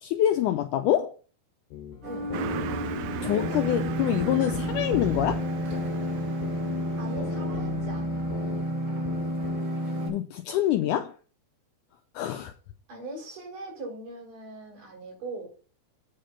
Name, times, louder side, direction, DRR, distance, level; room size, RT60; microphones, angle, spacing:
voice 1, 0.0-1.1 3.2-5.5 10.1-11.1 12.2-12.5, left 12 dB, 90° left, 1.8 m, -26 dB
sound 1, 1.7-3.9 4.2-8.6 9.1-9.6, left 9 dB, 70° left, 2.6 m, -38 dB
sound 2, 2.0-10.1, equal, 30° right, 6.2 m, -31 dB
Car passing by, 2.3-7.3, right 11 dB, 80° right, 1.8 m, -37 dB
voice 2, 7.0-8.3 12.9-15.5, right 2 dB, 65° right, 5.7 m, -40 dB
8.6 x 5.2 x 5.7 m
omnidirectional pair, 4.2 m